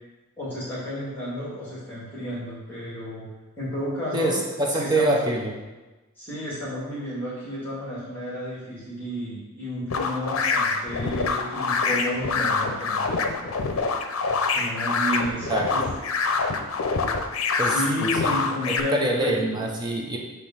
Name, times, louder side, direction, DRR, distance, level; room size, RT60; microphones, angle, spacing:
voice 1, 0.4-3.3 3.6-4.4 4.8-5.2 6.2-13.6 14.5-15.8 17.7-19.7, left 1 dB, 10° left, -9 dB, 2.0 m, -32 dB
voice 2, 4.1-5.5 15.5-15.7 17.6-17.8 18.0-18.4 18.7-20.2, right 2 dB, 20° right, 0 dB, 0.7 m, -25 dB
sound 1, 9.9-18.8, left 4 dB, 70° left, 0.6 m, -25 dB
7.4 x 3.3 x 5.7 m, 1.2 s
head